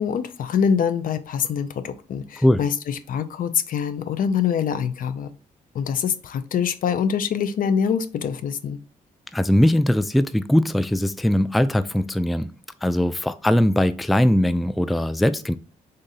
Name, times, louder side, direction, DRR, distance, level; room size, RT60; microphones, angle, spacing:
voice 1, 0.0-5.3 5.7-8.8, left 7 dB, 60° left, 11 dB, 0.5 m, -24 dB
voice 2, 9.3-12.5 12.8-15.6, left 1 dB, ahead, 12 dB, 0.3 m, -20 dB
3.7 x 2.6 x 4.0 m, 0.36 s
supercardioid pair, 50°, 16 cm